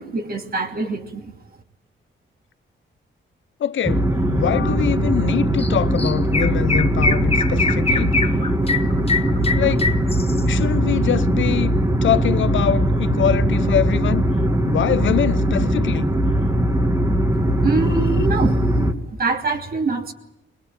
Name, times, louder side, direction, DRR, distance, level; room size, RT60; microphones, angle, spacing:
voice 1, 0.0-1.3 17.6-20.1, right 4 dB, 50° right, 2.7 m, -25 dB
voice 2, 3.6-8.1 9.6-9.9 10.5-11.7 12.0-14.2 14.6-16.1, left 10 dB, 75° left, 0.9 m, -23 dB
sound 1, 3.8-18.9, right 1 dB, 15° right, 2.0 m, -20 dB
Chirp tweet, 5.6-5.7 6.0-10.6, left 4 dB, 30° left, 1.3 m, -23 dB
21.5 x 21.5 x 9.0 m
wide cardioid pair, 120°, 20 cm